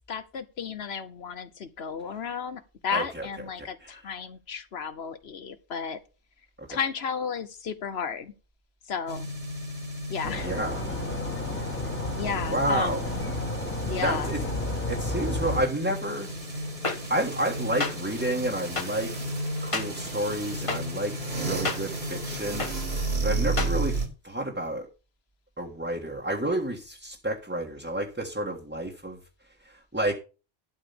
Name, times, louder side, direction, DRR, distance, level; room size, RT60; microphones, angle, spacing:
voice 1, 0.1-6.0 6.7-8.3 8.9-9.3 10.1-10.6 12.1-13.2 13.8-14.3, left 6 dB, 70° left, 1.2 m, -33 dB
voice 2, 2.9-3.3 3.8-4.0 6.6-6.7 10.4-10.8 12.5-13.0 14.0-14.5 14.9-16.3 17.1-19.1 19.6-22.7 23.2-24.0 24.2-24.9 25.6-29.2 29.6-30.1, right 1 dB, 10° right, 1.5 m, -30 dB
sound 1, 9.1-24.1, right 1 dB, 65° right, 2.8 m, -33 dB
sound 2, 10.2-15.6, left 1 dB, 10° left, 1.6 m, -32 dB
sound 3, 16.8-17.0 17.8-17.9 18.8-18.9 19.7-19.9 20.7-20.8 21.6-21.8 22.6-22.7 23.6-23.7, left 3 dB, 30° left, 1.3 m, -27 dB
12.0 x 5.0 x 7.0 m
omnidirectional pair, 1.1 m